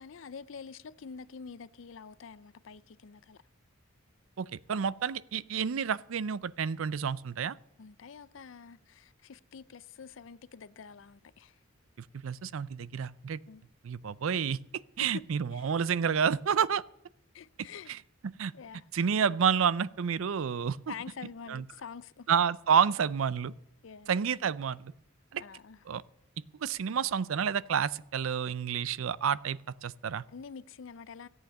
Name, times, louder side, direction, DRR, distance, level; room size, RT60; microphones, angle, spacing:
voice 1, 0.0-3.4 7.8-11.6 13.5-13.6 15.0-15.2 15.5-15.7 17.3-17.9 18.5-18.9 20.9-22.3 23.8-24.2 25.4-25.8 30.3-31.3, left 6 dB, 70° left, 0.5 m, -46 dB
voice 2, 4.4-7.6 12.2-13.4 13.8-14.6 15.0-16.8 17.9-18.0 18.2-18.5 18.9-20.9 21.5-21.6 22.3-23.5 24.1-24.9 25.3-25.4 25.9-26.0 26.6-30.2, right 7 dB, 85° right, 0.4 m, -29 dB
14.5 x 8.2 x 6.7 m
head